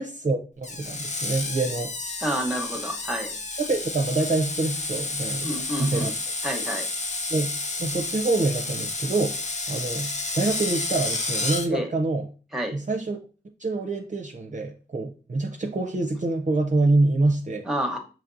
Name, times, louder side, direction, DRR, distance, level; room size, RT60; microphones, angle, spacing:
voice 1, 0.0-1.9 3.6-5.5 5.8-6.1 7.3-9.4 9.7-12.3 12.7-13.2 13.6-17.7, right 2 dB, 35° right, 0.5 m, -26 dB
Screech, 0.6-11.7, left 3 dB, 35° left, 0.6 m, -31 dB
voice 2, 2.2-3.3 5.4-6.1 6.4-6.9 11.7-11.9 12.5-12.8 17.6-18.0, equal, ahead, 0.9 m, -29 dB
5.8 x 3.0 x 2.5 m
wide cardioid pair, 60°, 21 cm